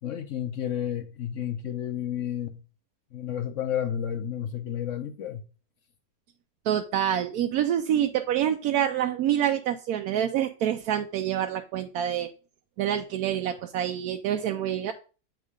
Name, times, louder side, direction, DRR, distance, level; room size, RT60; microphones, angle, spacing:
voice 1, 0.0-2.6 3.1-5.4, left 9 dB, 60° left, 0.8 m, -31 dB
voice 2, 6.7-12.3 12.8-14.9, right 10 dB, 70° right, 0.9 m, -26 dB
8.4 x 3.7 x 4.9 m
omnidirectional pair, 1.9 m